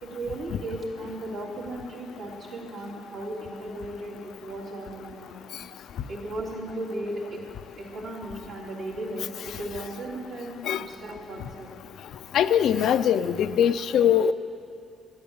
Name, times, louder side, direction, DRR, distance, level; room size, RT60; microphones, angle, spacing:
voice 1, 0.0-5.4 6.1-7.4 7.8-11.7, right 1 dB, 65° right, -4 dB, 3.2 m, -36 dB
voice 2, 12.3-14.3, left 9 dB, 75° left, 12 dB, 0.4 m, -21 dB
11.5 x 8.6 x 8.8 m, 2.5 s
cardioid pair, 90°, 0 cm